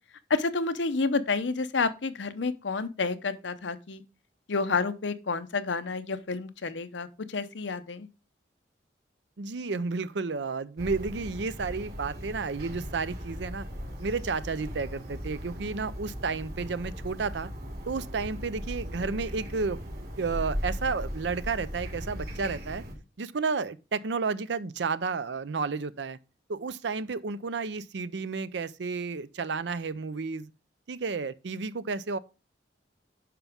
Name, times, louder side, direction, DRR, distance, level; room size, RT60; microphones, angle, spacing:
voice 1, 0.3-4.0 4.5-8.1, left 4 dB, 85° left, 0.8 m, -29 dB
voice 2, 9.4-13.7 14.0-17.5 17.9-19.8 20.2-22.8 23.2-26.2 26.5-30.5 30.9-32.2, right 4 dB, 75° right, 0.6 m, -32 dB
sound 1, 10.8-22.9, equal, 55° right, 2.5 m, -38 dB
9.4 x 6.0 x 3.5 m
head